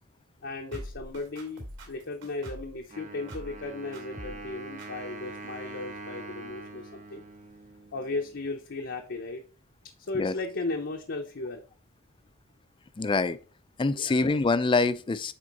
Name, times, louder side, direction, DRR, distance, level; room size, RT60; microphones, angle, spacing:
voice 1, 0.4-7.2 7.9-9.4 10.1-11.6 13.9-14.3, left 3 dB, 55° left, 0.7 m, -36 dB
sound 1, 0.7-2.8 3.3-3.7 3.9-4.5 4.8-4.9, equal, 60° right, 2.5 m, -43 dB
Wind instrument woodwind instrument, 2.9-8.5, right 3 dB, 35° right, 1.0 m, -44 dB
voice 2, 13.0-13.4 13.8-15.3, left 3 dB, 25° left, 0.4 m, -25 dB
7.5 x 4.4 x 3.9 m
head